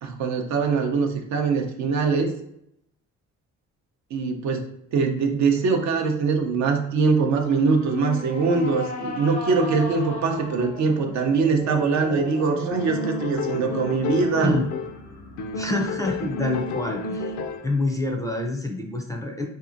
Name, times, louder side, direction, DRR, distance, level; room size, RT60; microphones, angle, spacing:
voice 1, 0.0-2.3 4.1-4.7 4.9-14.5, right 4 dB, 65° right, 4 dB, 0.6 m, -22 dB
sound 1, 7.4-16.8, left 2 dB, 90° left, 1.0 m, -36 dB
sound 2, 12.7-15.0 15.4-17.8, left 3 dB, 70° left, 0.4 m, -31 dB
voice 2, 15.6-17.3 17.6-19.5, left 2 dB, 10° left, 1 dB, 0.4 m, -26 dB
2.7 x 2.5 x 2.5 m, 0.74 s
cardioid pair, 90°, 30 cm